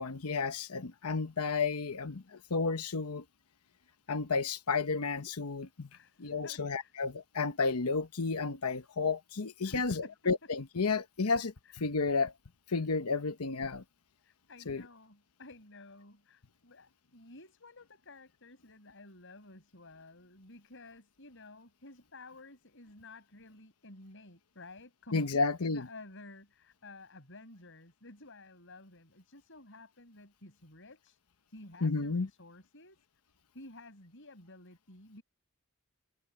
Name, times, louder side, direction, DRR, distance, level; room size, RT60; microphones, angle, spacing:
voice 1, 0.0-3.2 4.1-5.9 6.2-11.4 11.8-12.3 12.7-13.8 14.7-14.8 25.1-25.8 31.8-32.3, left 4 dB, 80° left, 1.0 m, -32 dB
voice 2, 5.9-6.9 9.6-10.2 11.2-11.8 14.2-31.2 31.5-33.0 33.5-35.2, left 2 dB, 60° left, 7.2 m, -53 dB
head